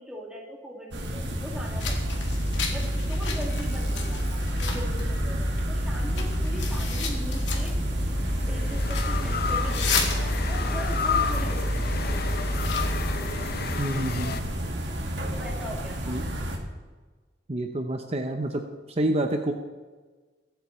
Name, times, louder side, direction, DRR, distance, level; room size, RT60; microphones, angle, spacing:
voice 1, 0.0-2.3 2.7-7.8 8.5-12.0 15.3-16.2, equal, 5° right, -2 dB, 2.2 m, -40 dB
sound 1, 0.9-16.6, equal, 85° right, 1.8 m, -32 dB
sound 2, 1.8-13.2, left 1 dB, 85° left, 2.2 m, -29 dB
sound 3, 3.5-5.0 6.9-14.4, left 6 dB, 60° left, 0.7 m, -33 dB
voice 2, 13.8-14.3 16.1-16.2 17.5-18.6 19.0-19.5, right 1 dB, 35° right, 5 dB, 0.7 m, -27 dB
23.0 x 8.1 x 3.2 m, 1.4 s
head